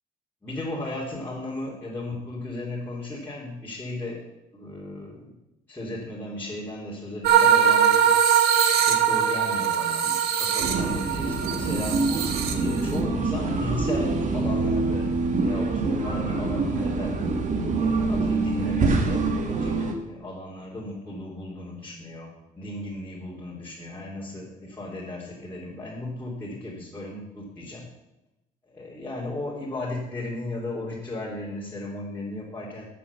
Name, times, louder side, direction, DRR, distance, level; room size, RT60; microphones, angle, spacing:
voice 1, 0.4-4.2 4.5-5.3 5.7-8.1 8.7-12.0 12.5-15.1 15.4-17.1 17.8-27.9 28.6-32.9, left 1 dB, 10° left, -6 dB, 3.2 m, -35 dB
sound 1, 7.2-13.0, right 8 dB, 70° right, 1.6 m, -21 dB
sound 2, 10.6-19.9, right 3 dB, 45° right, 2.1 m, -25 dB
12.5 x 7.4 x 7.1 m, 0.94 s
cardioid pair, 110°, 17 cm